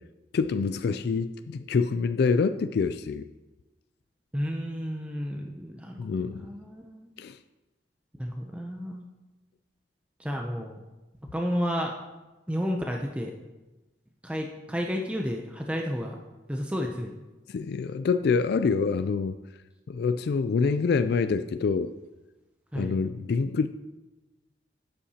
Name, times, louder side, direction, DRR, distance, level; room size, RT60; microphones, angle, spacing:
voice 1, 0.3-3.3 6.0-6.5 7.2-7.4 17.5-19.4 19.9-21.9 22.7-23.7, left 5 dB, 65° left, 11 dB, 0.3 m, -26 dB
voice 2, 4.3-7.1 8.2-9.1 10.2-10.8 11.3-11.9 12.5-13.3 14.2-16.2 16.5-17.1 22.7-23.0, equal, 5° right, 1 dB, 0.6 m, -31 dB
11.5 x 8.3 x 2.9 m, 1.1 s
head